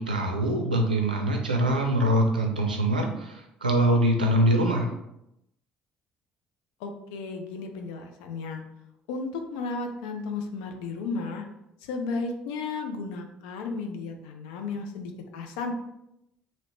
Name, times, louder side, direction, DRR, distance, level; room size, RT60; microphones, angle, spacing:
voice 1, 0.0-4.9, right 1 dB, 90° right, 2 dB, 0.4 m, -24 dB
voice 2, 6.8-8.6 9.1-11.4 11.8-15.7, left 4 dB, 70° left, 4 dB, 0.4 m, -34 dB
3.0 x 2.8 x 2.9 m, 0.84 s
figure-of-eight pair, 50°, 5 cm